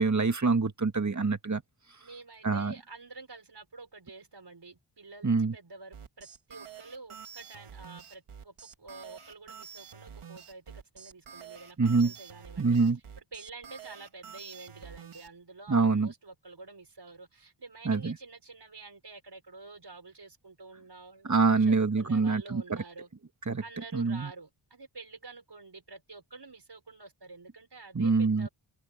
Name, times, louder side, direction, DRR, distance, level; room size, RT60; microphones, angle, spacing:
voice 1, 0.0-1.6 2.4-2.7 5.2-5.5 11.8-12.1 12.6-13.0 15.7-16.1 17.9-18.2 21.2-22.6 23.5-23.6 23.9-24.3 27.9-28.5, right 4 dB, 35° right, 1.9 m, -25 dB
voice 2, 2.0-12.8 13.3-23.1 23.6-28.5, right 3 dB, 50° right, 5.8 m, -48 dB
sound 1, 5.9-15.3, right 7 dB, 90° right, 3.1 m, -48 dB
cardioid pair, 45°, 49 cm